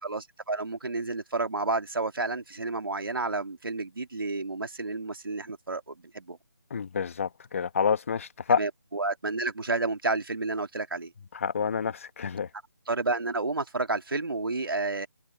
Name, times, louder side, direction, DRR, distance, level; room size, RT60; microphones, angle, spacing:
voice 1, 0.0-6.4 8.6-11.1 12.9-15.1, right 3 dB, 80° right, 2.2 m, -30 dB
voice 2, 6.7-8.6 11.4-12.5, left 6 dB, 40° left, 1.5 m, -28 dB
figure-of-eight pair, 165°, 12 cm